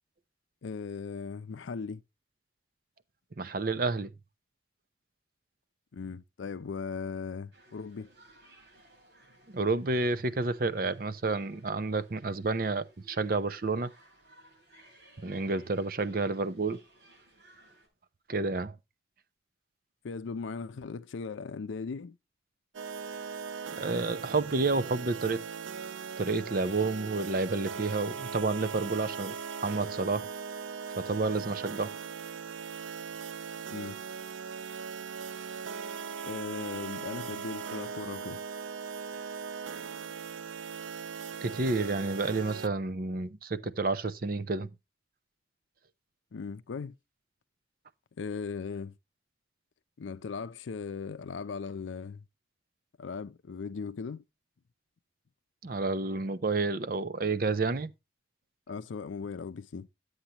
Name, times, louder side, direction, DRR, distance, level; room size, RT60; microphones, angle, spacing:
voice 1, 0.6-2.0 5.9-8.1 20.0-22.2 33.7-34.0 36.2-38.4 46.3-46.9 48.2-48.9 50.0-52.2 53.0-54.2 58.7-59.9, left 5 dB, 85° left, 0.5 m, -38 dB
voice 2, 3.4-4.1 9.5-13.9 15.2-16.8 18.3-18.8 23.8-25.4 26.2-29.4 29.6-30.3 31.0-31.9 41.4-44.7 55.6-57.9, right 3 dB, 50° right, 0.6 m, -30 dB
sound 1, 7.5-17.9, right 1 dB, 65° right, 5.5 m, -60 dB
sound 2, 22.7-42.7, right 6 dB, 90° right, 0.5 m, -39 dB
11.5 x 8.1 x 2.9 m
head